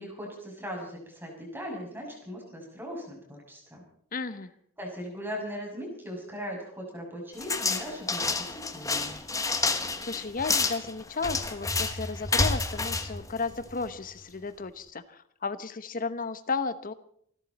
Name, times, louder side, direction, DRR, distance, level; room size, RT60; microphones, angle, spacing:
voice 1, 0.0-3.8 4.8-9.2, equal, 10° right, -1 dB, 6.6 m, -39 dB
voice 2, 4.1-4.5 10.1-16.9, left 4 dB, 40° left, 12 dB, 1.0 m, -34 dB
sound 1, 7.4-14.0, left 3 dB, 15° left, 1.3 m, -29 dB
28.0 x 12.0 x 4.2 m, 0.64 s
head